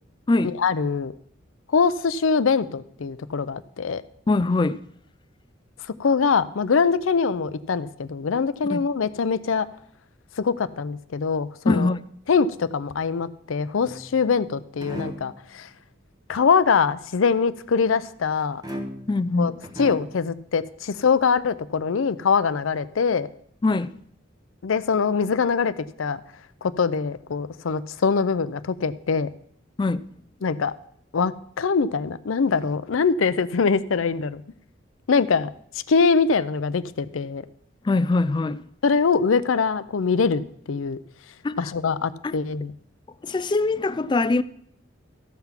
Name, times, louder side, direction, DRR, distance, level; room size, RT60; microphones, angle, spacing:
voice 1, 0.4-1.1 1.7-4.0 6.0-9.7 10.4-11.9 12.3-15.7 16.3-18.6 19.4-19.5 19.8-23.3 24.6-25.7 26.0-26.2 26.6-29.3 30.4-30.7 31.1-34.4 35.1-35.5 35.9-37.4 38.8-41.0 41.6-42.7, left 5 dB, 85° left, 0.5 m, -23 dB
voice 2, 4.3-4.8 8.7-8.9 11.7-12.0 19.1-19.6 23.6-23.9 29.8-30.0 37.8-38.6 41.4-41.7 42.2-42.4 43.2-44.4, left 3 dB, 25° left, 0.3 m, -22 dB
sound 1, 13.8-14.4 14.8-15.4 18.6-19.3 19.6-20.3, equal, 20° right, 1.1 m, -36 dB
14.0 x 5.9 x 5.8 m
head